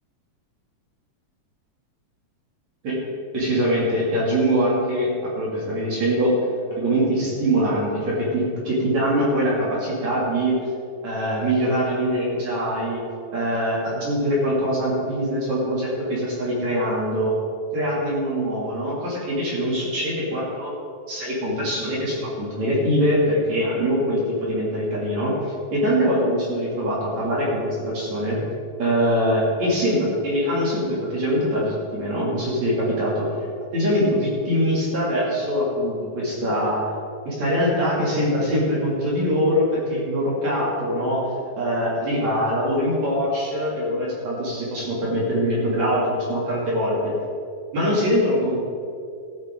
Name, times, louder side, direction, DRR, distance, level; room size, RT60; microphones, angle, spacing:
voice 1, 3.3-6.4 6.7-10.6 11.0-13.0 13.3-17.3 17.7-20.7 21.1-28.4 28.8-33.3 33.7-36.8 37.3-41.3 41.6-47.1 47.7-48.6, equal, 60° right, -6 dB, 4.2 m, -23 dB
15.5 x 11.5 x 3.9 m, 2.4 s
omnidirectional pair, 3.7 m